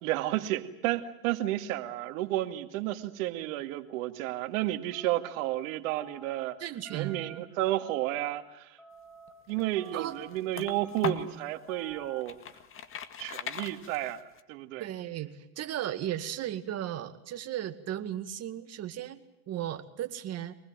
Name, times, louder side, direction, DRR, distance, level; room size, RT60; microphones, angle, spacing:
voice 1, 0.0-6.6 6.9-8.8 9.5-12.4 13.2-14.9, right 15 dB, 60° right, 6 dB, 2.3 m, -32 dB
sound 1, 4.9-5.5 5.9-6.4 6.8-7.4 7.8-8.3 8.8-9.3 9.7-10.3 10.7-11.2 11.7-12.2, right 3 dB, ahead, 6.8 m, -50 dB
voice 2, 6.6-7.2 9.9-10.1 14.8-20.6, right 11 dB, 35° right, 8 dB, 2.2 m, -36 dB
sound 2, 9.3-11.4 11.9-14.4, left 7 dB, 30° left, 1.9 m, -39 dB
24.5 x 20.0 x 9.1 m, 0.90 s
supercardioid pair, 120°, 44 cm